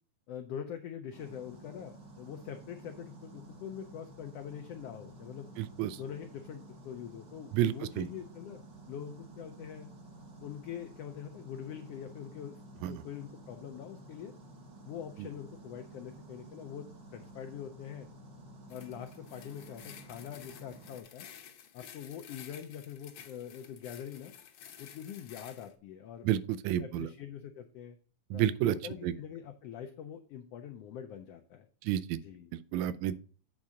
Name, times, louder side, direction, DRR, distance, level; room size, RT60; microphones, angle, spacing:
voice 1, 0.3-5.5 6.0-8.6 8.9-9.9 10.4-12.6 12.8-14.3 14.8-18.1 18.7-21.3 21.7-24.3 24.8-26.3 26.8-28.0 28.3-31.7 32.1-32.5, left 9 dB, 85° left, 6 dB, 1.4 m, -44 dB
sound 1, 1.1-21.0, right 1 dB, 55° right, 0.8 m, -52 dB
voice 2, 5.6-6.0 7.5-8.1 12.8-13.0 26.3-27.1 28.3-28.8 29.0-29.1 31.9-32.2 32.5-33.2, right 12 dB, 80° right, 15 dB, 1.8 m, -30 dB
sound 2, 18.7-25.7, left 9 dB, 70° left, 1.5 m, -52 dB
8.6 x 3.6 x 6.2 m, 0.42 s
omnidirectional pair, 3.4 m